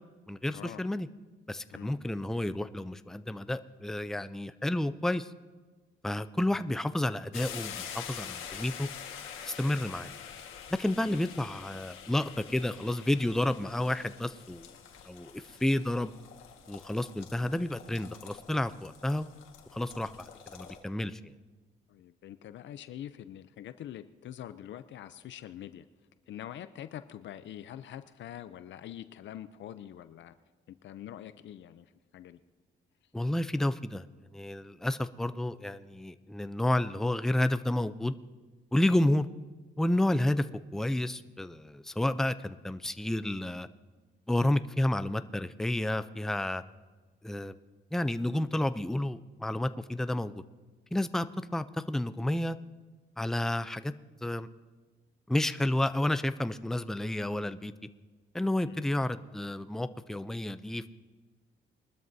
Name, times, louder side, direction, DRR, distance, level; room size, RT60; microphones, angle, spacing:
voice 1, 0.3-1.1 1.5-5.3 6.0-8.9 9.4-10.1 10.8-14.7 15.1-16.1 16.7-19.3 19.7-21.3 33.1-34.1 34.3-38.1 38.7-39.3 39.8-40.5 40.7-43.7 44.3-46.6 47.2-47.5 47.9-50.4 50.9-51.3 51.5-52.6 53.2-53.9 54.2-54.5 55.3-57.7 58.3-61.0, left 1 dB, ahead, 12 dB, 0.4 m, -30 dB
sound 1, 7.3-20.8, left 8 dB, 90° left, 1.6 m, -46 dB
voice 2, 21.9-25.8 26.3-30.3 30.7-31.9 32.1-32.4 58.7-58.8, left 11 dB, 70° left, 12 dB, 0.6 m, -44 dB
22.0 x 12.5 x 2.7 m, 1.3 s
cardioid pair, 90°, 20 cm